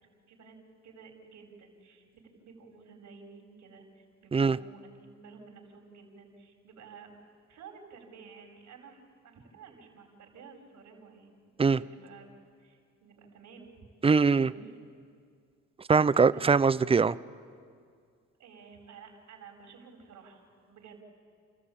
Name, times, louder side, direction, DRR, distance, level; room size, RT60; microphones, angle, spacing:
voice 1, 0.8-7.2 7.5-13.7 14.3-14.8 16.3-16.5 18.4-21.0, right 5 dB, 75° right, 2 dB, 4.8 m, -52 dB
voice 2, 14.0-14.5 15.9-17.2, right 5 dB, 20° right, 17 dB, 0.5 m, -22 dB
29.5 x 14.5 x 8.7 m, 2.2 s
cardioid pair, 90°, 30 cm